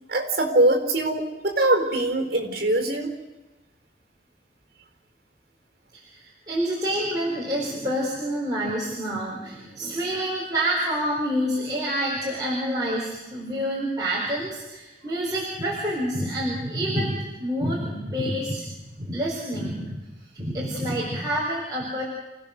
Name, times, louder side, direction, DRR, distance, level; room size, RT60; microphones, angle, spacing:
voice 1, 0.1-3.1, right 1 dB, 55° right, 4 dB, 4.1 m, -22 dB
voice 2, 6.5-18.6 19.0-20.0 20.3-22.0, equal, 25° right, -5 dB, 4.2 m, -27 dB
28.0 x 17.0 x 6.6 m, 1.0 s
head